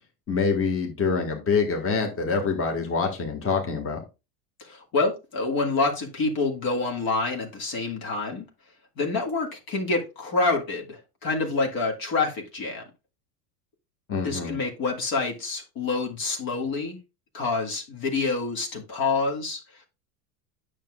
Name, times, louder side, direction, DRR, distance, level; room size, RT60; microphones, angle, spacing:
voice 1, 0.3-4.0 14.1-14.6, left 5 dB, 25° left, 1.7 m, -25 dB
voice 2, 4.6-8.5 9.0-12.9 14.2-17.0 17.3-19.8, left 3 dB, 45° left, 1.9 m, -27 dB
8.9 x 6.5 x 2.3 m
hypercardioid pair, 95°, 49 cm